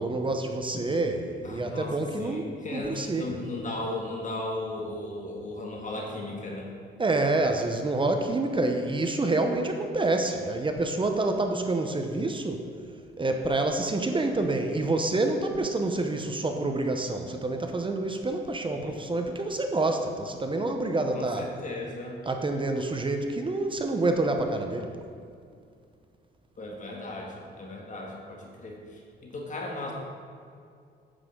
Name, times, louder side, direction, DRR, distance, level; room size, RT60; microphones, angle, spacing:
voice 1, 0.0-3.4 7.0-12.6 13.2-21.5 22.2-25.0, right 2 dB, 25° right, 5 dB, 0.8 m, -27 dB
voice 2, 1.4-6.7 16.6-16.7 18.7-19.0 21.1-22.2 26.6-29.9, left 2 dB, 40° left, -1 dB, 1.6 m, -36 dB
9.9 x 8.1 x 3.8 m, 2.3 s
cardioid pair, 90°, 20 cm